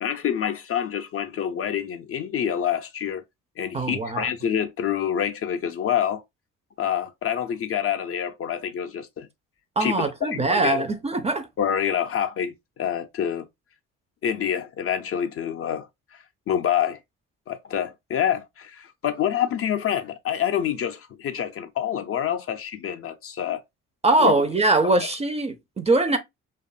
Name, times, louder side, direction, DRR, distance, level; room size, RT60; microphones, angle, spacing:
voice 1, 0.0-3.2 3.6-6.2 6.8-9.3 9.8-10.8 11.6-13.5 14.2-17.0 17.5-23.6 24.2-24.3 25.0-25.1, left 9 dB, 45° left, 0.4 m, -27 dB
voice 2, 3.7-4.3 9.8-11.5 24.0-26.2, right 2 dB, 20° right, 0.4 m, -22 dB
2.5 x 2.3 x 2.4 m
supercardioid pair, 60°, 34 cm